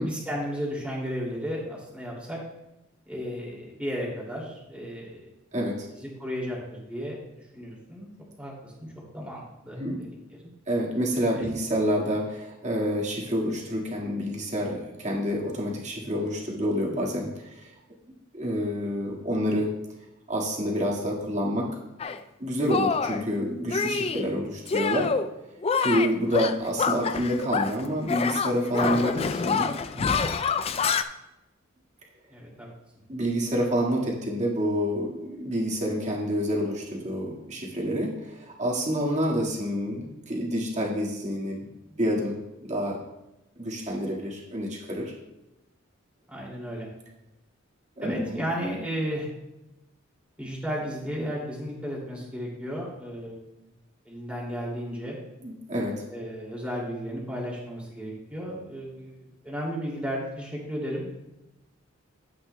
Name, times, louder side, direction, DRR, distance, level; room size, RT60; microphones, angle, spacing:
voice 1, 0.0-2.4 3.1-5.3 5.9-7.2 7.5-8.1 8.4-8.9 9.1-10.1 10.4-10.5 11.3-11.5 28.8-29.4 32.3-32.7 46.3-46.9 48.0-49.3 50.4-53.4 54.1-55.2 56.1-59.1 59.4-61.1, equal, 5° right, -4 dB, 2.5 m, -34 dB
voice 2, 5.5-5.9 9.8-10.0 10.7-17.7 18.3-19.7 20.3-21.8 22.4-25.1 25.8-30.2 33.1-43.0 43.6-45.1 48.0-48.4 55.4-56.0, equal, 35° right, -3 dB, 1.8 m, -28 dB
Shatter, 22.0-22.2 22.7-23.2 23.7-24.3 24.7-25.3 25.6-27.8 28.1-31.0, left 5 dB, 30° left, 0.3 m, -26 dB
11.5 x 8.6 x 2.2 m, 0.95 s
head